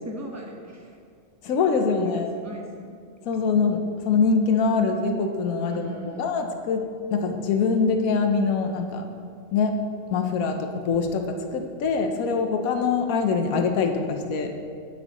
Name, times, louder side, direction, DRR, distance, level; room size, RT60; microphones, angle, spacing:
voice 1, 0.0-1.0 1.5-2.1 2.4-2.9 5.6-6.3, right 1 dB, 10° right, -1 dB, 1.0 m, -40 dB
voice 2, 1.4-2.3 3.2-6.8 7.1-9.0 9.5-9.7 10.1-14.5, left 5 dB, 80° left, 5 dB, 1.2 m, -24 dB
17.5 x 6.1 x 3.0 m, 2.2 s
omnidirectional pair, 1.5 m